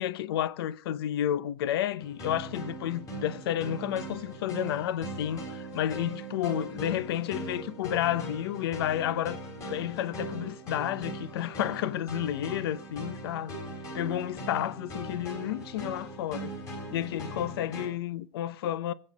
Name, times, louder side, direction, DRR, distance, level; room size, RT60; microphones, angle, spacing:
voice 1, 0.0-9.4 9.7-13.6 13.9-16.5 16.9-18.9, left 11 dB, 60° left, 0.7 m, -31 dB
sound 1, 2.0-17.9, right 2 dB, 20° left, 3.5 m, -40 dB
24.0 x 8.6 x 4.1 m
supercardioid pair, 170°, 14 cm